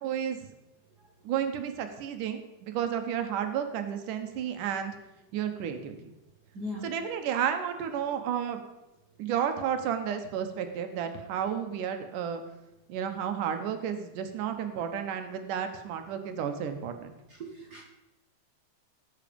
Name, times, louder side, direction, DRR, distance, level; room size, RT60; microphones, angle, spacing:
voice 1, 0.0-0.4 1.2-5.0 5.3-6.1 6.8-8.6 9.2-12.4 12.9-17.1, right 8 dB, 85° right, 7 dB, 2.7 m, -32 dB
voice 2, 6.5-6.9 17.4-17.8, left 1 dB, 45° right, 0 dB, 1.4 m, -38 dB
17.5 x 8.2 x 5.2 m, 0.98 s
omnidirectional pair, 3.6 m